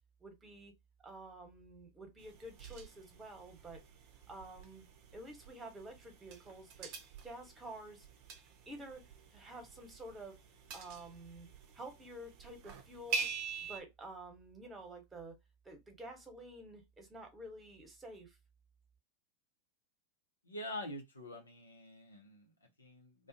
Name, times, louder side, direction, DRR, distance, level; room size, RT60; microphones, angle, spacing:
voice 1, 0.2-0.7 1.0-3.8 4.3-4.8 5.1-6.9 7.2-8.1 8.7-10.4 10.7-11.5 11.7-13.3 13.7-15.4 15.6-18.4, right 1 dB, 15° right, 1.1 m, -50 dB
sound 1, 2.2-13.8, right 5 dB, 45° right, 0.6 m, -46 dB
voice 2, 20.4-23.3, left 1 dB, 90° left, 0.7 m, -46 dB
2.4 x 2.2 x 2.6 m
figure-of-eight pair, 90°, 0 cm